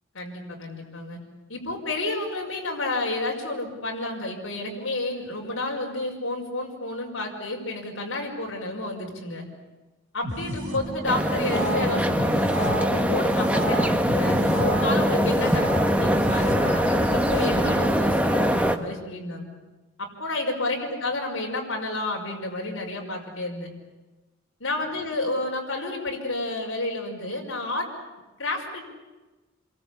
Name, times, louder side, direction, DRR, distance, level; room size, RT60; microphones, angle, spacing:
voice 1, 0.2-1.2 1.5-9.4 10.1-19.4 20.0-23.7 24.6-27.9 28.4-28.8, left 2 dB, 65° left, -1 dB, 5.5 m, -30 dB
sound 1, 10.2-17.9, right 1 dB, 35° right, 5.9 m, -32 dB
sound 2, 11.0-18.8, equal, 5° right, 1.3 m, -23 dB
28.0 x 23.0 x 8.5 m, 1.2 s
head